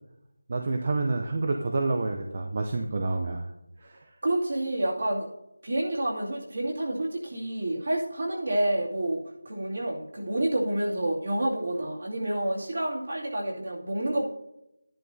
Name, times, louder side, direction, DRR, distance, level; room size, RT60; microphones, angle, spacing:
voice 1, 0.5-3.5 3.8-4.0, right 3 dB, 25° right, 4 dB, 0.5 m, -28 dB
voice 2, 4.2-5.3 5.6-14.3, right 1 dB, 50° right, -4 dB, 2.4 m, -29 dB
13.0 x 10.5 x 2.7 m, 0.89 s
figure-of-eight pair, 180°, 0 cm